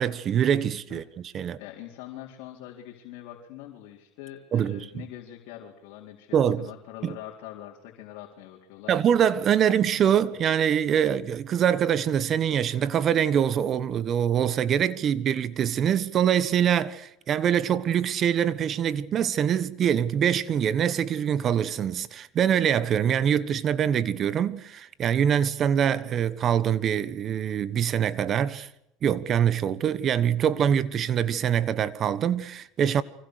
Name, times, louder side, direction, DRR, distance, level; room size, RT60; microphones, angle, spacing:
voice 1, 0.0-1.6 4.5-4.9 6.3-6.7 7.0-7.1 8.9-28.7 29.0-33.0, right 9 dB, 40° right, 1.3 m, -24 dB
voice 2, 1.6-8.9, left 12 dB, 70° left, 4.3 m, -43 dB
28.5 x 25.0 x 6.7 m
supercardioid pair, 120°, 0 cm